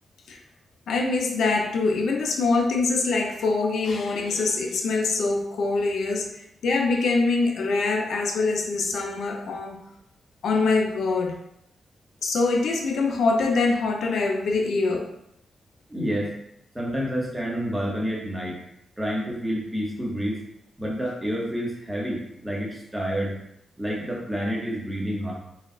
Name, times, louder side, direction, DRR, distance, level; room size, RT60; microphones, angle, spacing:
voice 1, 0.9-9.8 10.4-11.4 12.2-15.1, left 3 dB, 85° left, 2 dB, 0.6 m, -24 dB
voice 2, 15.9-16.4 16.7-18.6 19.0-20.4 20.8-23.4 23.8-25.3, equal, 5° right, -3 dB, 1.0 m, -29 dB
4.2 x 2.4 x 3.7 m, 0.75 s
wide cardioid pair, 145°, 0 cm